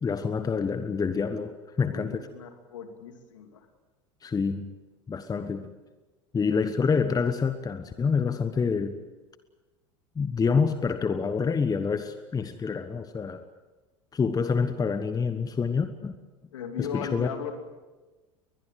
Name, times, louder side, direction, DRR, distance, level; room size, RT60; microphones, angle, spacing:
voice 1, 0.0-2.2 4.2-4.7 5.1-5.7 6.3-9.0 10.1-13.4 14.1-16.1 16.8-17.3, left 5 dB, 25° left, 10 dB, 1.3 m, -27 dB
voice 2, 1.8-3.7 16.5-17.6, left 7 dB, 75° left, 6 dB, 2.9 m, -37 dB
22.0 x 21.0 x 7.6 m, 1.2 s
figure-of-eight pair, 75°, 16 cm